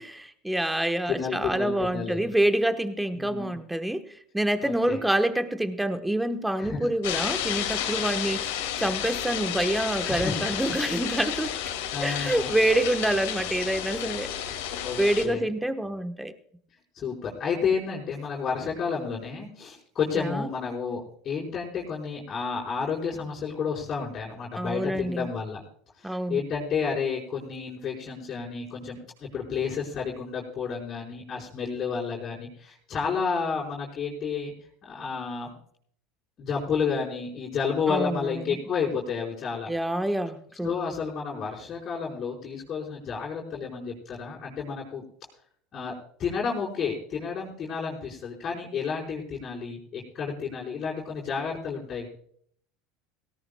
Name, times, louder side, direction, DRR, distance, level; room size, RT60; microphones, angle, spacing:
voice 1, 0.0-11.5 12.0-14.6 15.0-16.3 20.1-20.5 24.6-25.3 26.0-26.4 37.9-38.6 39.7-40.7, right 1 dB, 5° right, 9 dB, 1.2 m, -27 dB
voice 2, 1.1-2.3 3.1-3.6 4.6-5.0 6.6-6.9 10.1-10.4 11.9-12.5 14.8-15.5 16.9-25.6 26.0-34.5 34.8-35.5 36.4-39.7 40.6-45.0 45.7-45.9 46.2-52.1, left 6 dB, 40° left, -6 dB, 4.7 m, -31 dB
sound 1, 7.0-15.3, left 10 dB, 75° left, 2.4 m, -31 dB
17.5 x 17.5 x 2.3 m, 0.62 s
hypercardioid pair, 90°, 0 cm